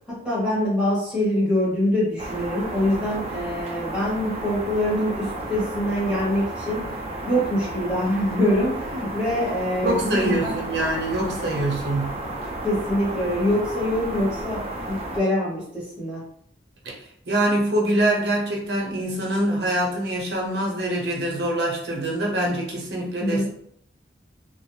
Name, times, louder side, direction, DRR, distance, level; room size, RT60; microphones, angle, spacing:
voice 1, 0.1-6.8 7.2-10.5 12.6-14.6 14.9-16.2 23.2-23.5, left 1 dB, 5° right, -7 dB, 0.8 m, -24 dB
sound 1, 2.2-15.2, right 1 dB, 35° right, 0.4 m, -33 dB
voice 2, 9.8-12.2 16.8-23.5, right 1 dB, 70° right, -2 dB, 0.7 m, -24 dB
2.2 x 2.0 x 3.0 m, 0.66 s
head